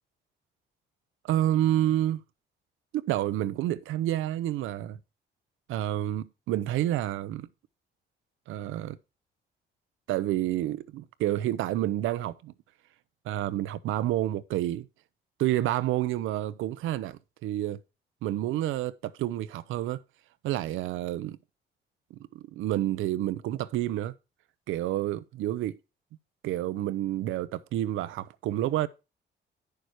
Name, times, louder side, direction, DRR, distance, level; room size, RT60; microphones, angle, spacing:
voice 1, 1.2-2.2 2.9-5.0 5.7-7.5 8.5-9.0 10.1-12.5 13.2-14.9 15.4-17.8 18.2-20.0 20.4-21.4 22.1-24.1 24.7-25.8 26.4-28.9, right 13 dB, 90° right, 0.7 m, -29 dB
9.5 x 6.8 x 4.5 m
cardioid pair, 90°, 20 cm